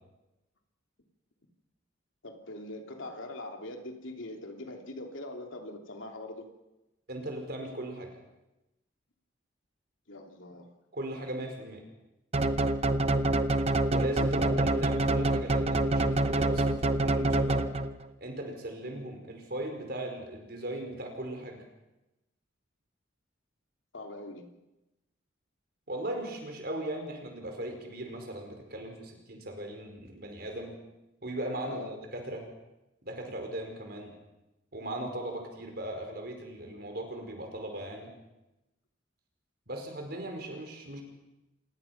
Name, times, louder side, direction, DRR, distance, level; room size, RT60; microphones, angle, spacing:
voice 1, 2.2-6.5 10.1-10.7 23.9-24.5 31.6-31.9, left 2 dB, 80° left, 3 dB, 3.0 m, -42 dB
voice 2, 7.1-8.1 10.9-11.9 13.9-17.7 18.2-21.6 25.9-30.7 31.2-32.4 33.0-34.1 34.7-38.1 39.7-41.0, right 1 dB, 50° right, 3 dB, 5.0 m, -38 dB
sound 1, 12.3-18.1, right 2 dB, 30° right, 0.9 m, -26 dB
27.0 x 19.0 x 6.0 m, 0.98 s
head